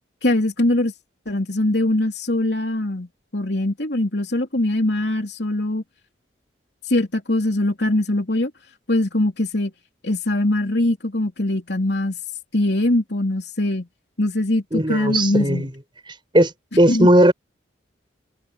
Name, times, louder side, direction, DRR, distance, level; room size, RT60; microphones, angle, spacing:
voice 1, 0.2-0.9 1.3-5.8 6.9-8.5 8.9-9.7 10.0-12.2 12.5-13.9 14.2-15.7 16.9-17.1, left 1 dB, 60° left, 3.6 m, -22 dB
voice 2, 14.7-15.7 16.3-17.3, right 1 dB, 25° right, 5.2 m, -17 dB
head